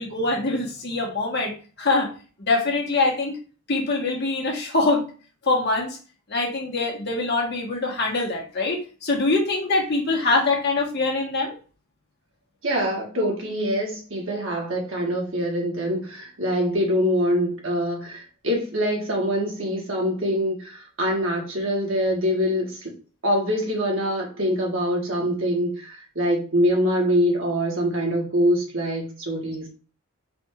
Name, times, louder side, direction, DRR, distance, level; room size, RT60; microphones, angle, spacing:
voice 1, 0.0-2.1 2.4-3.3 3.7-5.1 5.4-6.0 6.3-11.5, left 3 dB, 50° left, 0 dB, 1.3 m, -24 dB
voice 2, 12.6-22.9 23.2-29.7, equal, 60° right, -1 dB, 1.6 m, -24 dB
4.2 x 2.6 x 4.4 m, 0.37 s
head